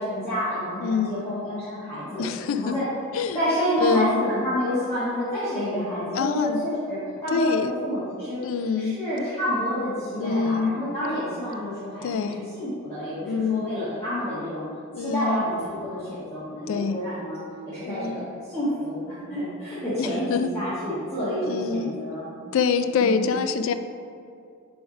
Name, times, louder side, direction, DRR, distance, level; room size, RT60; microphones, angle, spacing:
voice 1, 0.0-2.2 2.5-2.9 3.3-8.4 8.8-14.6 14.9-22.3 23.0-23.3, equal, 10° left, -14 dB, 1.6 m, -29 dB
voice 2, 0.8-1.3 2.2-2.8 3.1-3.4 3.8-4.2 6.1-6.6 7.3-7.7 8.4-9.0 10.2-10.8 12.0-12.4 13.3-13.6 14.9-15.4 16.7-17.0 17.8-18.3 20.0-20.5 21.4-21.9 22.5-23.7, left 5 dB, 65° left, 10 dB, 0.3 m, -25 dB
6.9 x 3.5 x 5.2 m, 2.4 s
head